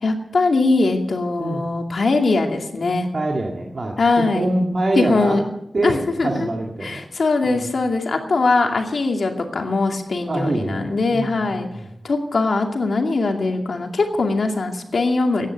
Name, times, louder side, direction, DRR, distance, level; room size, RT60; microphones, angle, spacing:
voice 1, 0.0-3.1 4.0-4.5 5.0-5.4 5.8-6.5 6.8-11.7 12.0-15.5, left 3 dB, 70° left, 3 dB, 2.4 m, -21 dB
voice 2, 3.1-5.4 5.7-7.0 7.4-7.7 10.3-11.9, right 2 dB, 45° right, 0 dB, 2.0 m, -25 dB
16.0 x 10.5 x 8.2 m, 0.85 s
wide cardioid pair, 110°, 0 cm